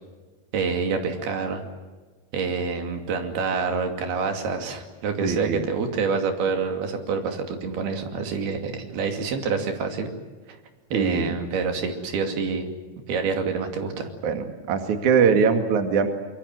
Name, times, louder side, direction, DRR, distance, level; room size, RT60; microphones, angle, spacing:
voice 1, 0.5-1.6 2.3-10.1 10.5-10.6 10.9-12.7 13.1-14.1, right 5 dB, 80° right, 5 dB, 4.5 m, -27 dB
voice 2, 5.2-5.6 10.9-11.3 14.2-16.1, right 6 dB, 55° right, 6 dB, 3.3 m, -22 dB
26.5 x 24.0 x 8.0 m, 1.3 s
omnidirectional pair, 4.4 m